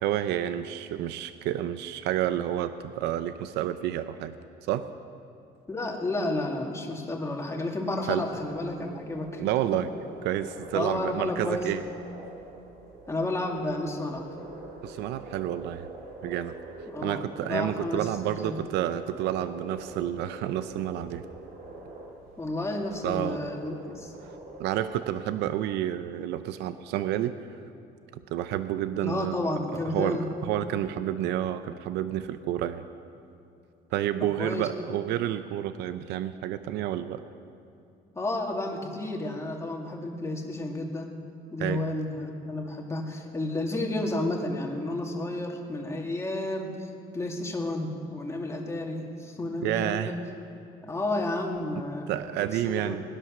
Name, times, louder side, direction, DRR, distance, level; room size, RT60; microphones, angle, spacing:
voice 1, 0.0-4.3 4.6-4.9 8.1-8.2 9.4-9.9 10.2-11.8 14.8-15.9 16.2-16.6 17.0-21.2 23.0-23.5 24.6-27.4 28.3-29.5 29.9-30.2 30.4-32.9 33.9-37.2 41.6-41.8 49.6-50.1 52.1-53.0, right 12 dB, 85° right, 11 dB, 0.6 m, -29 dB
voice 2, 5.7-9.4 9.7-9.8 10.7-11.7 13.1-14.3 16.9-18.1 18.4-18.6 22.4-24.1 29.0-30.3 34.2-34.7 38.1-41.2 41.5-50.2 50.8-52.1 52.6-53.0, left 2 dB, 15° left, 0 dB, 2.3 m, -31 dB
sound 1, 8.2-24.9, right 2 dB, 60° right, 3.0 m, -45 dB
19.5 x 11.0 x 6.5 m, 2.6 s
cardioid pair, 110°, 17 cm